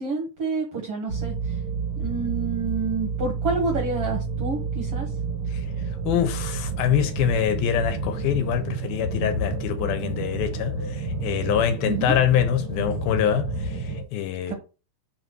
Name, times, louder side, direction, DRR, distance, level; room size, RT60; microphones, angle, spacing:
voice 1, 0.0-1.6 2.0-5.1 11.8-12.2 14.5-14.6, right 3 dB, 70° right, 1.4 m, -28 dB
sound 1, 1.1-14.0, right 3 dB, 50° right, 1.4 m, -29 dB
voice 2, 6.1-10.7 11.2-13.5 14.1-14.5, left 9 dB, 75° left, 2.5 m, -24 dB
5.8 x 4.1 x 6.0 m
omnidirectional pair, 4.7 m